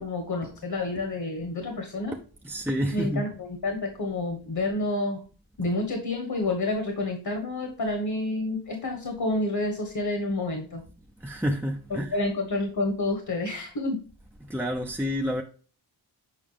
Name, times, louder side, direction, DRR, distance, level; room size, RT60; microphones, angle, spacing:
voice 1, 0.0-2.1 2.9-5.2 5.6-10.8 11.9-14.0, left 2 dB, 55° left, 1.4 m, -29 dB
voice 2, 2.4-3.2 11.2-12.2 14.4-15.4, equal, 5° right, 0.6 m, -29 dB
7.4 x 4.9 x 3.3 m
wide cardioid pair, 70°, 44 cm